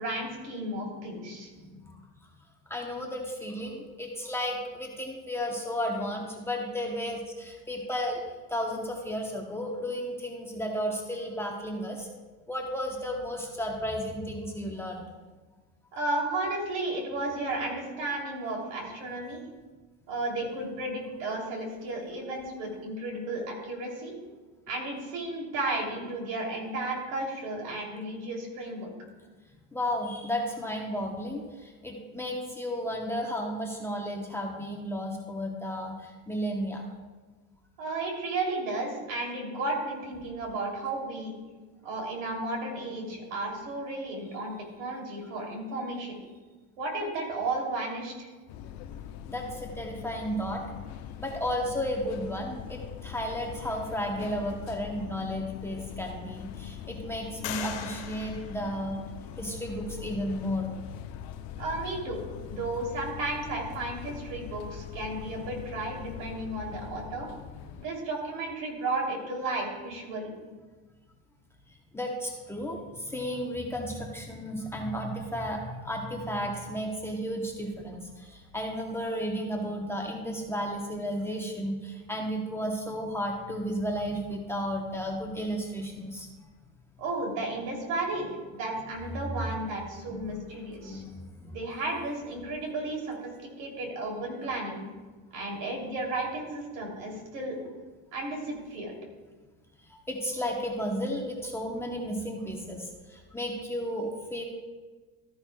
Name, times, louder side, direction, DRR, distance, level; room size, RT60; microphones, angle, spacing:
voice 1, 0.0-1.5 15.9-19.4 20.1-24.1 24.7-28.9 37.8-41.3 41.8-46.2 46.8-48.3 61.6-62.2 62.5-67.3 67.8-70.3 87.0-91.0 91.5-93.3 93.6-94.8 95.3-97.6 98.1-98.9, right 2 dB, 70° right, 0 dB, 3.1 m, -33 dB
voice 2, 1.6-2.0 2.7-8.2 8.5-12.1 12.5-15.1 29.7-36.8 45.2-45.3 49.3-50.6 51.2-59.0 59.4-60.7 71.9-86.3 89.2-89.4 90.0-90.4 90.8-91.6 99.9-104.4, equal, 5° left, 0 dB, 0.9 m, -33 dB
sound 1, 48.5-67.9, left 9 dB, 50° left, 0.7 m, -42 dB
sound 2, 55.2-55.3 55.8-56.5 57.4-59.4, left 10 dB, 85° left, 1.4 m, -40 dB
13.5 x 10.5 x 2.3 m, 1.3 s
cardioid pair, 140°, 34 cm